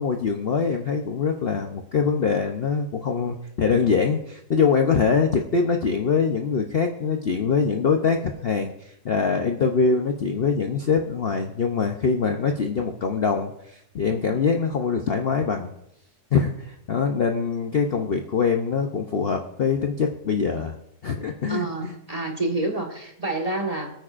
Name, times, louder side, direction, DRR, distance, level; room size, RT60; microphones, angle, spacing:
voice 1, 0.0-15.7 16.3-20.7 21.0-22.0, left 5 dB, 50° left, 3 dB, 0.8 m, -23 dB
voice 2, 21.5-23.9, right 2 dB, 25° right, 1 dB, 1.4 m, -28 dB
24.0 x 9.2 x 2.5 m, 0.79 s
omnidirectional pair, 1.7 m